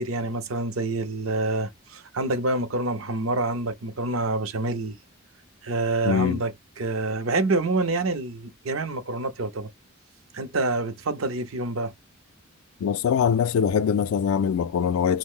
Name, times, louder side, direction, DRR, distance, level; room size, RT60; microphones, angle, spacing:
voice 1, 0.0-5.0 5.6-9.7 10.3-11.9, right 2 dB, 70° right, 0.6 m, -27 dB
voice 2, 6.1-6.4 12.8-15.2, left 7 dB, 75° left, 0.3 m, -23 dB
2.5 x 2.0 x 3.6 m
head